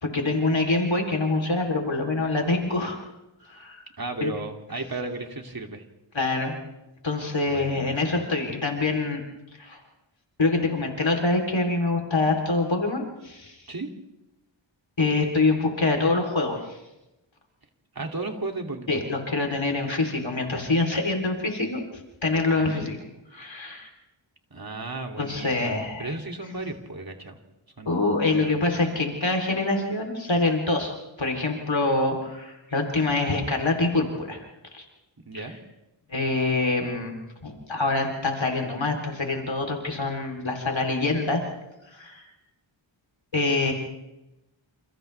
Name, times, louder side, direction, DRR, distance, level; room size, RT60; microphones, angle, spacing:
voice 1, 0.0-3.0 3.5-3.8 4.2-4.3 6.1-6.5 7.0-9.2 9.6-9.8 10.4-13.6 15.0-16.8 18.9-21.8 22.2-23.0 23.3-23.9 25.2-26.1 27.9-30.9 31.2-34.4 34.7-34.8 36.1-37.1 37.4-41.4 41.9-42.2 43.3-43.7, left 3 dB, 65° left, 2 dB, 3.7 m, -25 dB
voice 2, 4.0-5.8 7.5-8.2 13.7-13.9 17.9-19.1 24.5-27.4 27.8-28.5 35.2-35.6, right 2 dB, 45° right, 2 dB, 2.8 m, -35 dB
29.0 x 29.0 x 3.5 m, 0.97 s
wide cardioid pair, 65°, 49 cm